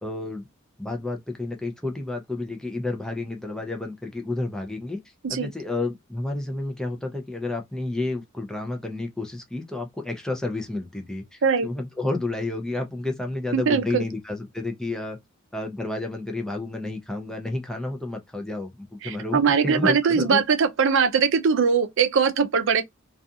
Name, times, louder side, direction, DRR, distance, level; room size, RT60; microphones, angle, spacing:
voice 1, 0.0-0.5 0.8-5.0 5.3-15.2 15.5-20.4, left 2 dB, 5° left, 0.5 m, -30 dB
voice 2, 13.5-14.0 19.0-22.8, right 6 dB, 65° right, 0.5 m, -21 dB
2.4 x 2.3 x 2.6 m
head